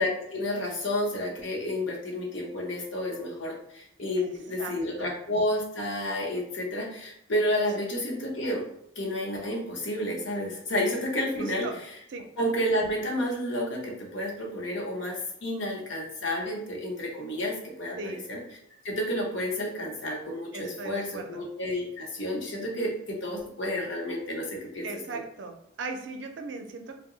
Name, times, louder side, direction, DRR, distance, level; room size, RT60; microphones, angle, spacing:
voice 1, 0.0-8.6 9.0-11.7 12.4-18.4 18.8-24.5 24.7-24.9 25.1-25.2, left 1 dB, 75° left, -2 dB, 0.9 m, -30 dB
voice 2, 11.4-11.8 12.1-12.3 18.0-18.2 20.5-21.4 24.8-26.9, right 3 dB, 70° right, 5 dB, 0.4 m, -38 dB
2.8 x 2.2 x 3.7 m, 0.74 s
head